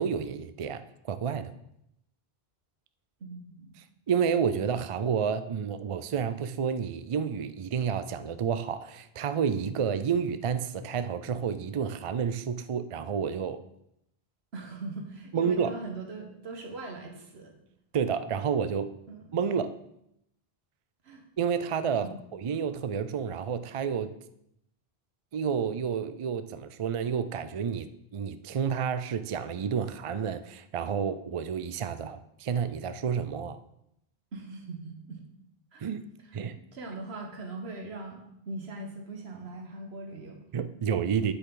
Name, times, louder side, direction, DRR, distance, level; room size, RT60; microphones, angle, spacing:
voice 1, 0.0-1.5 4.1-13.6 15.3-15.8 17.9-18.9 19.3-19.8 21.4-24.1 25.3-33.6 35.8-36.1 36.3-36.6 40.5-41.3, right 7 dB, 55° right, 12 dB, 0.3 m, -30 dB
voice 2, 3.2-3.7 4.5-4.6 14.5-17.5 19.1-19.4 21.0-21.2 22.0-22.2 34.3-35.2 35.7-35.9 36.2-36.4 36.7-40.4, right 2 dB, 90° right, 3 dB, 1.5 m, -41 dB
9.2 x 8.1 x 3.8 m, 0.79 s
omnidirectional pair, 1.0 m